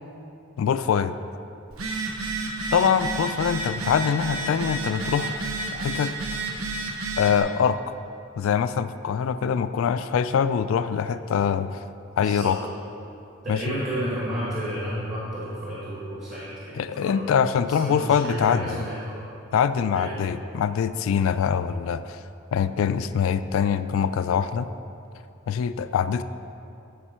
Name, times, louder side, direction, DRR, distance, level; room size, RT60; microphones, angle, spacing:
voice 1, 0.6-1.1 2.7-5.5 5.7-6.1 7.2-8.0 8.4-11.8 12.2-12.6 13.5-13.7 16.7-18.6 19.5-22.2 22.5-24.7 25.5-26.2, left 7 dB, 75° left, 12 dB, 0.3 m, -24 dB
Telephone, 1.7-7.4, right 3 dB, 90° right, 1.0 m, -31 dB
voice 2, 12.2-12.5 13.4-17.2 17.6-19.2 19.9-20.3, equal, 35° right, -8 dB, 1.6 m, -32 dB
13.5 x 5.2 x 4.3 m, 2.8 s
head